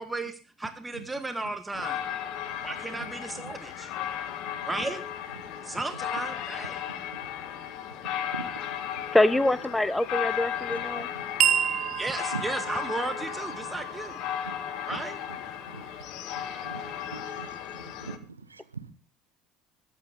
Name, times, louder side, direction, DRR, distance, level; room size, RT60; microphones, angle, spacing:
voice 1, 0.0-2.0 2.6-3.9 4.6-5.0 5.6-6.8 12.0-14.2 14.9-15.2, right 2 dB, 15° right, 1.6 m, -34 dB
sound 1, 1.7-18.2, left 10 dB, 60° left, 1.8 m, -35 dB
voice 2, 2.5-3.1 3.4-3.6 4.3-4.6 7.4-7.5 8.3-9.1 10.7-11.6 12.3-12.4 14.4-14.6 15.7-15.9 16.3-18.9, right 5 dB, 90° right, 1.2 m, -43 dB
voice 3, 9.1-11.1, left 1 dB, 10° left, 1.1 m, -24 dB
sound 2, 11.4-16.0, right 10 dB, 50° right, 0.8 m, -31 dB
22.0 x 9.9 x 3.8 m
figure-of-eight pair, 65°, 0 cm